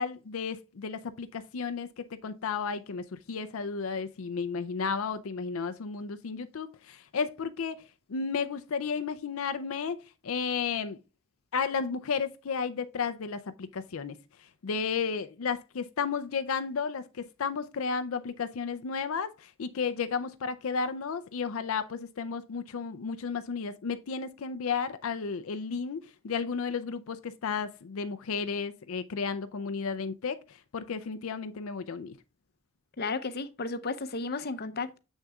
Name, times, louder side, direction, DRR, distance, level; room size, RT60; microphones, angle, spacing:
voice 1, 0.0-7.8 8.1-10.0 10.2-11.0 11.5-14.2 14.6-32.1, left 5 dB, 85° left, 0.5 m, -33 dB
voice 2, 33.0-35.0, left 3 dB, 50° left, 0.7 m, -33 dB
7.3 x 6.4 x 2.3 m
head